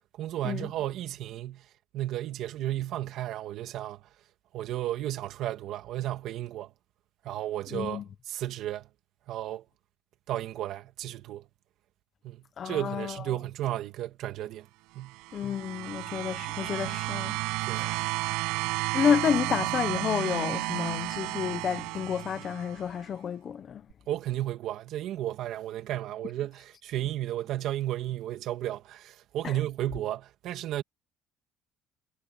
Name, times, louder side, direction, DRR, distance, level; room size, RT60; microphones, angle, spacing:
voice 1, 0.2-1.6 1.9-4.0 4.5-6.7 7.2-8.8 9.3-9.6 10.3-11.4 12.2-14.7 14.9-15.1 17.6-17.9 24.1-30.8, right 13 dB, 55° right, 2.4 m, -33 dB
voice 2, 7.7-8.0 12.6-13.2 15.3-17.4 17.8-18.0 18.9-23.8 29.4-29.5, left 7 dB, 35° left, 1.1 m, -30 dB
sound 1, 15.1-22.8 23.9-24.0, right 23 dB, 85° right, 6.4 m, -32 dB
cardioid pair, 160°, 0 cm